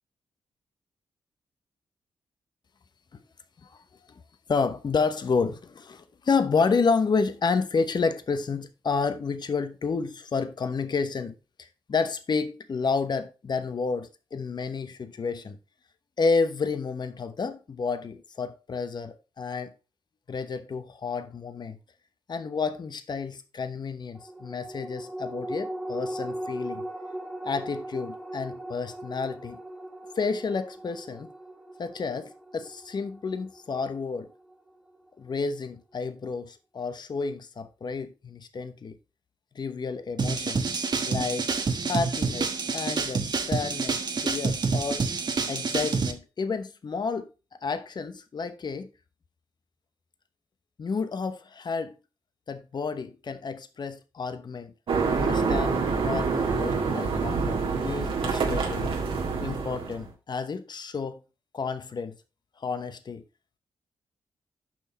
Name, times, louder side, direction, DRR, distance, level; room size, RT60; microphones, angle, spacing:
voice 1, 4.5-15.6 16.2-19.7 20.3-21.8 22.3-26.9 27.4-29.6 30.1-31.3 31.8-34.3 35.2-38.9 39.5-40.6 41.1-41.5 41.8-45.0 45.5-47.3 47.6-48.9 50.8-51.9 52.5-54.7 55.2-59.0 59.4-61.2 61.5-62.2 62.6-63.2, left 4 dB, 50° left, 1.0 m, -30 dB
sound 1, 24.1-35.0 35.3-35.4, right 1 dB, ahead, 1.8 m, -39 dB
sound 2, 40.2-46.1, right 4 dB, 50° right, 1.2 m, -28 dB
sound 3, 54.9-60.1, right 4 dB, 65° right, 1.7 m, -26 dB
7.7 x 5.6 x 4.1 m
supercardioid pair, 45°, 10 cm